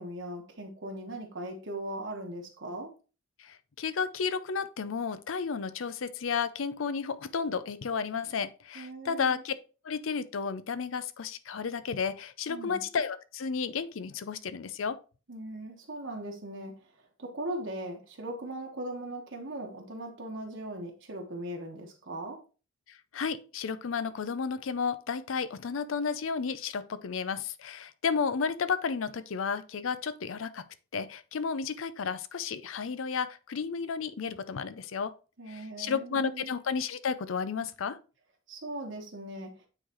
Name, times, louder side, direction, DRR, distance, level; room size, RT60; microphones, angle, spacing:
voice 1, 0.0-2.9 8.7-9.4 12.5-12.8 15.3-16.8 17.2-22.4 35.4-36.5 38.5-39.6, right 1 dB, 65° right, 1.3 m, -39 dB
voice 2, 3.4-9.5 9.8-15.0 22.9-30.6 30.9-35.1 35.5-38.0, left 5 dB, 80° left, 0.5 m, -32 dB
8.9 x 3.9 x 3.0 m
head